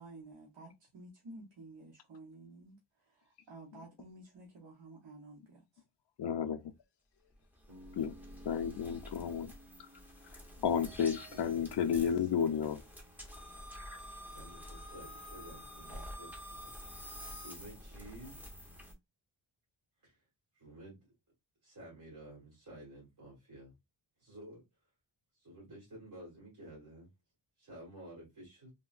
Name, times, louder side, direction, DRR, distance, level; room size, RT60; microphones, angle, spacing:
voice 1, 0.0-5.8, right 2 dB, 60° right, 0.9 m, -53 dB
voice 2, 6.2-6.6 8.0-8.1 8.5-9.5 10.6-12.8, left 8 dB, 65° left, 0.5 m, -32 dB
sound 1, 7.3-18.9, equal, 5° right, 0.7 m, -49 dB
Bass guitar, 7.7-11.8, equal, 20° right, 1.6 m, -58 dB
voice 3, 10.7-12.4 14.2-18.4 20.0-20.2 20.5-21.1 21.6-23.7 24.2-24.6 25.3-27.1 27.6-28.7, right 1 dB, 45° right, 1.7 m, -52 dB
3.7 x 2.1 x 2.3 m
wide cardioid pair, 130°, 47 cm